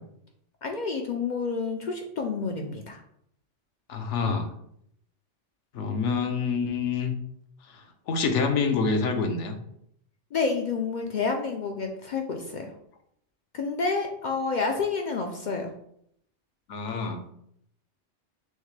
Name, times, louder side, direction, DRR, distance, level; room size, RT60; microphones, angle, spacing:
voice 1, 0.6-3.0 10.3-12.7 13.5-15.7, left 4 dB, 60° left, 3 dB, 0.5 m, -29 dB
voice 2, 3.9-4.5 5.7-7.2 8.1-9.6 16.7-17.3, left 5 dB, 75° left, 5 dB, 1.0 m, -26 dB
6.4 x 2.1 x 3.2 m, 0.72 s
omnidirectional pair, 1.2 m